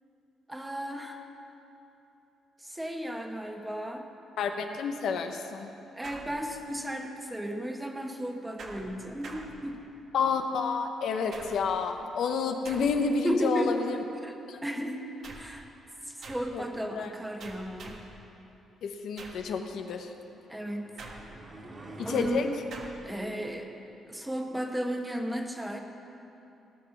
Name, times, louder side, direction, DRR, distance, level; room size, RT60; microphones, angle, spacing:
voice 1, 0.5-1.3 2.6-4.1 5.9-9.8 13.2-14.4 14.6-15.7 16.1-18.0 20.5-20.9 22.0-22.6 23.0-23.7 24.1-25.8, equal, 10° right, 3 dB, 1.3 m, -34 dB
voice 2, 4.4-5.7 10.1-14.0 14.5-14.6 16.5-17.1 18.8-20.1 22.0-22.5, left 5 dB, 75° left, 5 dB, 0.8 m, -30 dB
sound 1, 6.0-6.9 8.6-10.1 11.3-11.9 12.6-13.3 15.2-15.6 16.2-16.6 17.4-18.2 19.2-19.6 21.0-21.6 22.7-23.1, right 3 dB, 65° right, 1.5 m, -46 dB
sound 2, 20.3-22.3, right 2 dB, 35° right, 2.3 m, -46 dB
17.5 x 6.1 x 6.0 m, 2.9 s
cardioid pair, 90°, 0 cm